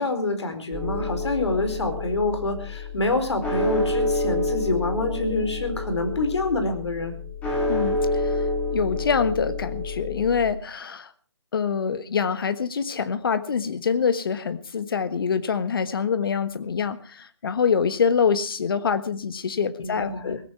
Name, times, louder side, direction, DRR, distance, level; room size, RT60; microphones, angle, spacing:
voice 1, 0.0-7.1 19.8-20.4, left 2 dB, 70° left, 7 dB, 4.4 m, -26 dB
sound 1, 0.7-10.5, left 2 dB, 10° left, 2.9 m, -28 dB
voice 2, 7.7-8.4 8.7-11.1 11.5-20.4, left 6 dB, 50° left, 12 dB, 1.4 m, -25 dB
17.5 x 15.5 x 4.6 m, 0.40 s
figure-of-eight pair, 155°, 15 cm